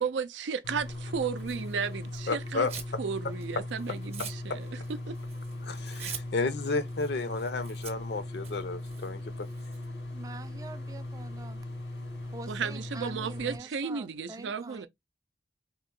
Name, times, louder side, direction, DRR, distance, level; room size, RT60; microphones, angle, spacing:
voice 1, 0.0-2.7 3.0-5.2 6.0-6.1 12.5-14.9, right 6 dB, 85° right, 0.4 m, -34 dB
sound 1, 0.6-13.6, left 1 dB, 85° left, 1.5 m, -39 dB
Tearing, 1.4-3.0 3.3-9.9, right 7 dB, 35° right, 0.8 m, -46 dB
voice 2, 2.3-2.7 5.6-9.5, left 3 dB, 65° left, 0.6 m, -32 dB
voice 3, 10.1-11.6 12.3-14.9, right 3 dB, 20° right, 0.3 m, -45 dB
2.9 x 2.8 x 3.7 m
head